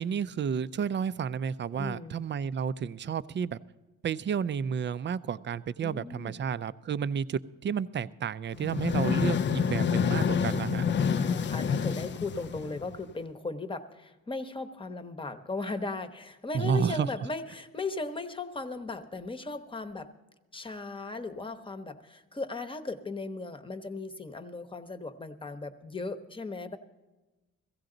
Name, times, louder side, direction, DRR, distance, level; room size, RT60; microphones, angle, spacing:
voice 1, 0.0-3.6 4.0-10.9 16.5-17.1, right 7 dB, 40° right, 16 dB, 0.5 m, -31 dB
voice 2, 1.8-2.2 5.8-6.4 9.6-9.8 11.1-20.1 20.5-26.8, left 3 dB, 15° left, 8 dB, 1.0 m, -37 dB
sound 1, 8.6-13.1, left 6 dB, 40° left, 0.5 m, -28 dB
16.0 x 15.5 x 3.9 m, 1.1 s
cardioid pair, 90°, 30 cm